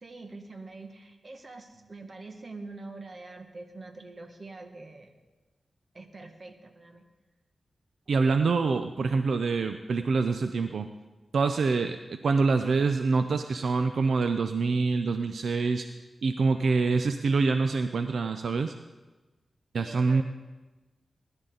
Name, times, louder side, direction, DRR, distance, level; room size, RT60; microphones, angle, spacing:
voice 1, 0.0-5.1 5.9-7.1 8.3-8.4 19.8-20.2, right 3 dB, 45° right, 5 dB, 1.7 m, -45 dB
voice 2, 8.1-10.9 11.3-15.9 16.2-18.7 19.7-20.2, right 4 dB, 80° right, 8 dB, 0.6 m, -25 dB
20.5 x 11.5 x 4.0 m, 1.2 s
cardioid pair, 65°, 0 cm